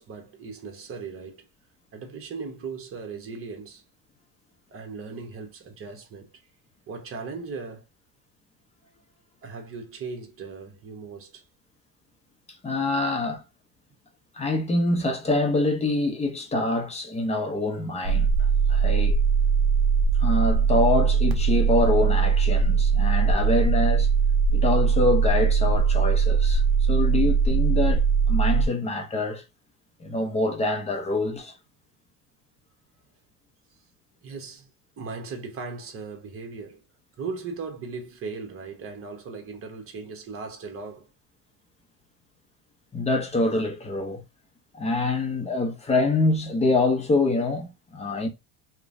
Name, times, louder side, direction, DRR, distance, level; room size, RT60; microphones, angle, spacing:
voice 1, 0.0-1.5 1.9-3.8 4.7-6.3 6.9-7.8 9.4-11.4 34.2-34.7 35.0-36.8 37.2-41.1, right 4 dB, 35° right, 1.0 m, -38 dB
voice 2, 12.6-13.4 14.3-19.2 20.2-24.1 24.5-29.4 30.0-31.5 42.9-44.2 44.7-48.3, left 2 dB, 15° left, 0.7 m, -25 dB
sound 1, 18.0-28.7, right 6 dB, 60° right, 0.7 m, -21 dB
3.0 x 2.2 x 2.5 m
cardioid pair, 115°, 37 cm